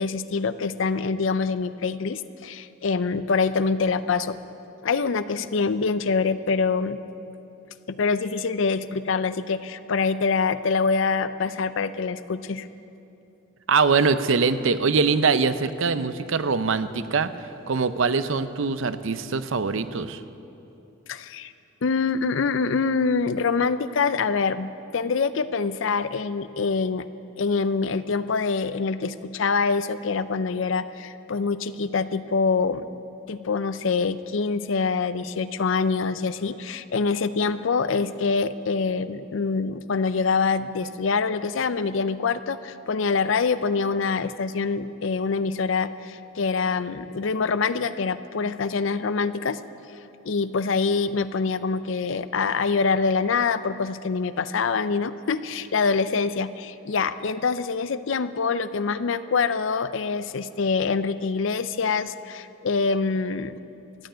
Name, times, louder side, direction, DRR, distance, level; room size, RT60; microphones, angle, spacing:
voice 1, 0.0-4.4 4.8-7.0 7.9-12.7 21.1-21.5 21.8-27.1 27.4-33.0 33.3-49.6 50.2-63.5, left 4 dB, 65° left, 14 dB, 0.5 m, -25 dB
voice 2, 13.7-17.3 17.7-20.2, right 4 dB, 70° right, 12 dB, 0.6 m, -23 dB
14.5 x 9.2 x 8.7 m, 2.8 s
head